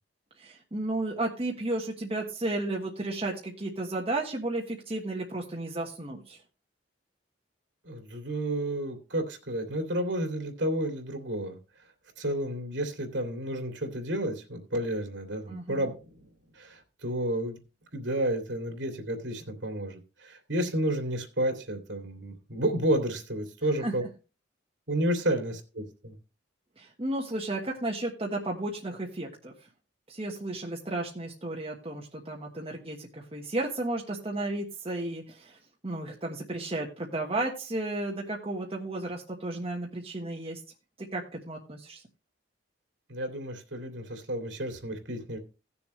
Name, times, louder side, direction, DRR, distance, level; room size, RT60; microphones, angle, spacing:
voice 1, 0.4-6.4 15.5-15.9 23.8-23.9 26.8-29.5 30.1-35.6 35.8-40.6 41.1-42.0, right 2 dB, 30° right, -1 dB, 1.3 m, -33 dB
voice 2, 7.8-11.6 12.2-15.9 16.5-17.6 17.9-24.0 24.9-26.2 43.1-45.4, right 1 dB, 80° right, 4 dB, 2.6 m, -31 dB
17.0 x 7.0 x 3.1 m, 0.31 s
head